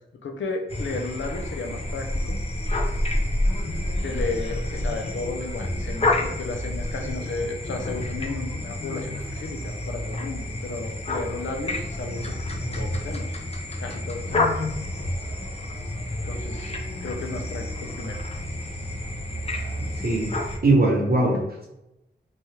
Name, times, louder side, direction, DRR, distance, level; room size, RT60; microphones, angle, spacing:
voice 1, 0.2-2.4 4.0-12.2 12.8-13.3 13.8-14.5 16.3-16.7 17.0-18.2, left 3 dB, 85° left, 3 dB, 0.5 m, -33 dB
sound 1, 0.7-20.6, left 1 dB, 35° left, 0.5 m, -29 dB
voice 2, 19.8-20.3 20.6-21.7, right 2 dB, 55° right, -1 dB, 0.8 m, -21 dB
3.1 x 2.3 x 2.8 m, 0.89 s
wide cardioid pair, 75°, 19 cm